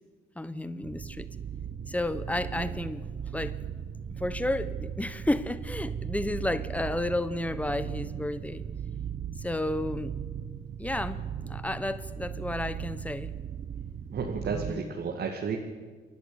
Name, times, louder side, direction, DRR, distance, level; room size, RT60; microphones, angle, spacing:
voice 1, 0.4-1.3 1.9-3.1 3.3-3.6 4.1-8.6 9.4-10.1 10.8-13.3 14.4-14.9, left 1 dB, 5° left, 13 dB, 1.2 m, -32 dB
sound 1, 0.8-14.7, right 8 dB, 40° right, 0.8 m, -37 dB
voice 2, 14.1-15.6, right 5 dB, 60° right, 2 dB, 2.4 m, -32 dB
28.0 x 11.5 x 8.9 m, 1.5 s
cardioid pair, 90°, 20 cm